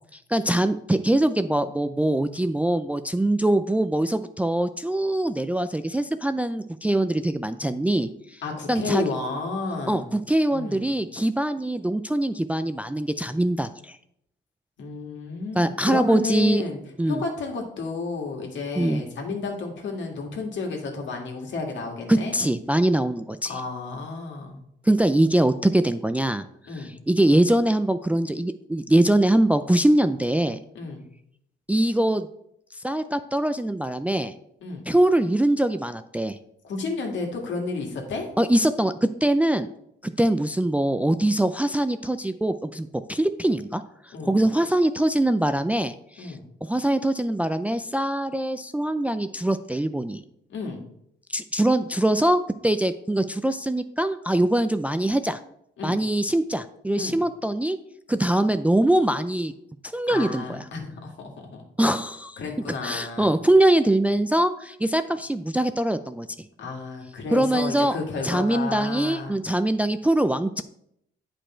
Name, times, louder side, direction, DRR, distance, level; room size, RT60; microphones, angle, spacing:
voice 1, 0.3-8.4 8.7-9.1 9.9-14.0 15.6-16.6 17.0-17.2 18.8-19.0 22.1-23.5 24.9-26.5 26.8-30.6 31.7-32.3 32.8-34.3 34.9-36.4 38.4-39.7 40.0-43.8 44.2-46.3 46.6-50.2 51.3-55.4 55.8-57.8 58.1-59.5 59.9-60.6 61.8-62.4 62.8-66.3 67.3-68.0 68.2-70.6, right 1 dB, 5° right, 10 dB, 0.4 m, -23 dB
voice 2, 8.4-10.1 10.5-10.9 14.8-16.8 17.1-22.4 23.5-24.6 26.7-27.0 30.7-31.0 34.6-34.9 36.6-38.3 44.1-44.4 46.2-46.4 50.5-50.8 55.8-56.0 57.0-57.2 60.1-61.6 62.4-63.2 66.6-69.4, left 4 dB, 65° left, 1 dB, 2.1 m, -32 dB
8.7 x 5.1 x 4.4 m, 0.74 s
cardioid pair, 90°, 20 cm